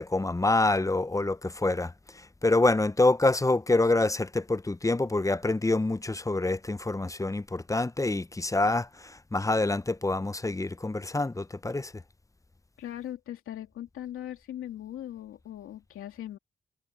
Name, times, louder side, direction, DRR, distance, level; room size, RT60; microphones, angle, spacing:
voice 1, 0.0-12.0, left 2 dB, 15° left, 0.7 m, -26 dB
voice 2, 12.8-16.4, left 12 dB, 80° left, 2.6 m, -39 dB
supercardioid pair, 40°, 21 cm